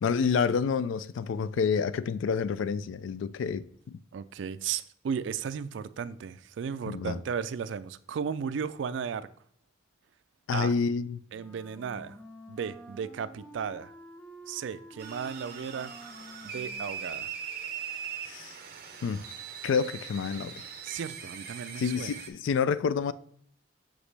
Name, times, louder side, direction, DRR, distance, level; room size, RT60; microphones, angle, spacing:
voice 1, 0.0-4.0 6.9-7.2 10.5-11.2 18.2-18.6 19.0-19.2 19.6-20.5 21.8-23.1, left 6 dB, 85° left, 0.3 m, -28 dB
voice 2, 4.1-9.3 10.5-10.7 11.3-12.2 12.5-13.9 14.5-15.9 16.4-17.3 20.8-22.1, right 7 dB, 75° right, 0.3 m, -35 dB
Wind instrument woodwind instrument, 11.3-17.5, right 1 dB, 5° left, 0.5 m, -50 dB
sound 1, 15.0-22.3, right 7 dB, 50° right, 0.7 m, -41 dB
6.3 x 5.0 x 3.3 m
head